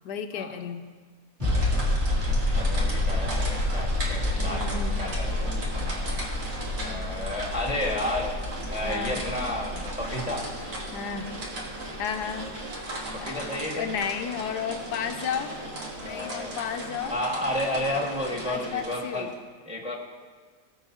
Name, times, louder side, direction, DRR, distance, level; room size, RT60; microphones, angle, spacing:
voice 1, 0.0-0.8 4.5-4.9 8.8-9.2 10.9-11.4 12.0-12.5 13.3-15.6 16.0-17.2 18.4-19.3, left 7 dB, 80° left, 7 dB, 1.2 m, -33 dB
sound 1, 1.4-12.7 13.0-13.1, left 2 dB, 25° right, 2.7 m, -29 dB
sound 2, 1.4-19.3, right 1 dB, 65° right, 2.1 m, -37 dB
voice 2, 2.6-6.3 6.8-8.3 8.7-10.5 13.1-13.9 16.0-16.5 17.1-19.3 19.6-20.0, left 1 dB, 5° right, -2 dB, 1.4 m, -32 dB
18.0 x 7.3 x 2.8 m, 1.5 s
omnidirectional pair, 1.7 m